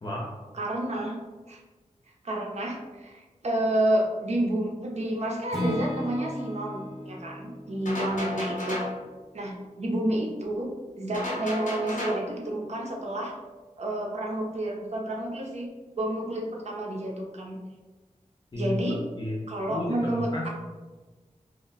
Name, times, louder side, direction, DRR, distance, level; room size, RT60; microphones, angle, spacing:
voice 1, 0.5-1.2 1.5-1.6 2.2-8.8 9.3-13.3 13.8-17.6 18.5-19.0 19.5-20.5, right 1 dB, 55° right, -1 dB, 0.6 m, -30 dB
Acoustic guitar / Strum, 5.5-9.6, equal, ahead, 0.7 m, -36 dB
sound 1, 7.9-9.0 11.1-12.3, left 1 dB, 85° left, 0.7 m, -33 dB
voice 2, 19.7-20.5, left 1 dB, 35° left, -4 dB, 0.4 m, -32 dB
2.1 x 2.1 x 3.8 m, 1.3 s
wide cardioid pair, 85°, 13 cm